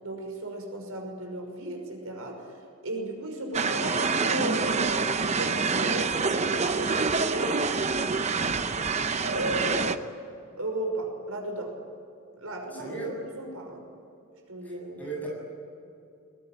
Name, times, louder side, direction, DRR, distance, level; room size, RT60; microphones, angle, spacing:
voice 1, 0.0-7.6 9.2-10.1 10.6-11.8 12.4-13.8 14.5-15.1, right 1 dB, 80° right, 2 dB, 6.0 m, -35 dB
sound 1, 3.5-10.0, right 4 dB, 30° right, 0.8 m, -26 dB
voice 2, 12.7-13.1 14.6-15.3, right 3 dB, 10° left, -2 dB, 7.5 m, -36 dB
22.5 x 22.0 x 9.3 m, 2.6 s
head